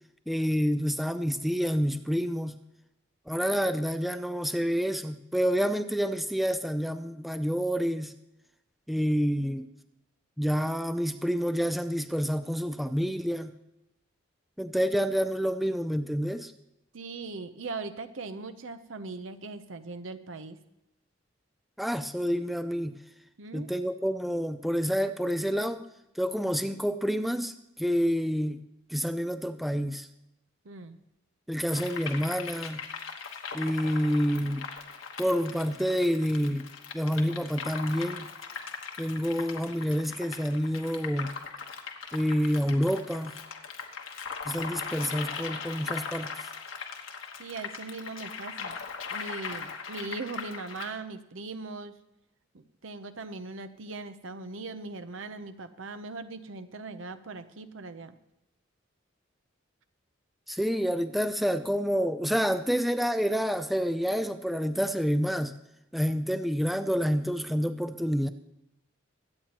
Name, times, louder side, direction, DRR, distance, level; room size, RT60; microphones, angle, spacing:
voice 1, 0.3-2.6 3.3-8.1 8.9-9.7 10.4-13.5 14.6-16.5 21.8-23.0 23.5-25.8 26.2-28.6 28.9-30.1 31.5-32.8 33.5-34.6 35.2-36.7 36.9-38.3 39.0-41.3 42.1-43.3 44.5-46.3 60.5-65.5 65.9-68.3, equal, ahead, 10 dB, 0.4 m, -28 dB
voice 2, 16.9-20.6 23.4-23.7 30.6-31.0 47.4-48.8 49.1-52.0 52.5-58.2, right 3 dB, 80° right, 10 dB, 0.8 m, -40 dB
sound 1, 31.7-50.9, left 5 dB, 80° left, 1.3 m, -39 dB
23.0 x 8.7 x 2.9 m, 0.88 s
head